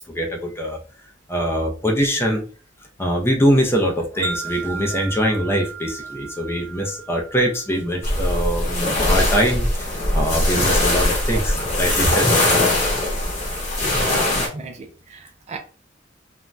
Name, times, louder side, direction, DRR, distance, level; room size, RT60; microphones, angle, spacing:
voice 1, 0.1-0.8 1.3-2.4 3.0-12.6, equal, 15° left, 0.5 m, -23 dB
Wind chime, 4.2-8.5, right 4 dB, 65° right, 0.9 m, -35 dB
Waves in the bay, 8.0-14.5, left 1 dB, 40° left, 0.9 m, -20 dB
voice 2, 13.9-15.6, right 4 dB, 35° right, 0.3 m, -35 dB
2.5 x 2.2 x 3.1 m
head